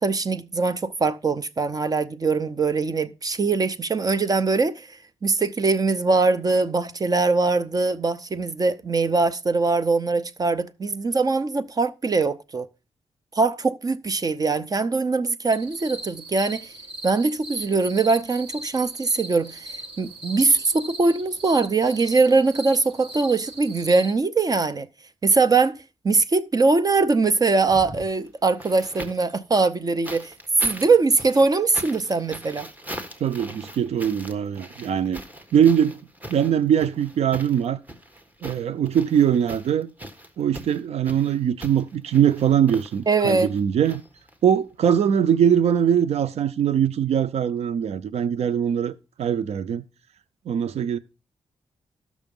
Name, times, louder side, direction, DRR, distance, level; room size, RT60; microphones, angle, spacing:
voice 1, 0.0-12.7 13.3-16.7 17.0-24.9 25.2-25.8 26.0-30.3 30.6-32.7 43.1-43.5, right 3 dB, 35° right, 0.6 m, -22 dB
sound 1, 15.5-24.1, right 1 dB, 65° right, 4.9 m, -39 dB
sound 2, 27.6-29.3 30.0-44.6 45.7-45.8, equal, 15° right, 1.6 m, -41 dB
voice 2, 33.2-35.2 35.5-36.0 36.3-37.8 38.4-39.9 40.4-44.0 44.4-48.9 49.2-49.8 50.5-51.0, right 9 dB, 90° right, 0.5 m, -21 dB
13.5 x 6.2 x 5.3 m
wide cardioid pair, 100°, 10 cm